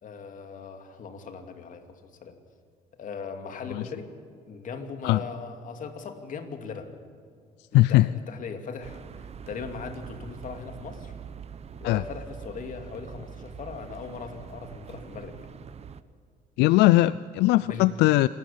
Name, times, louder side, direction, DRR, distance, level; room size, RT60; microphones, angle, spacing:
voice 1, 0.0-2.4 3.0-4.1 4.5-6.9 7.7-11.1 11.8-15.4 17.6-17.9, left 5 dB, 50° left, 6 dB, 2.6 m, -39 dB
voice 2, 7.7-8.1 11.8-12.0 16.6-18.3, left 18 dB, 85° left, 17 dB, 0.4 m, -19 dB
sound 1, 8.8-16.0, right 7 dB, 40° right, 0.9 m, -43 dB
27.5 x 13.0 x 8.7 m, 2.2 s
cardioid pair, 110°, 17 cm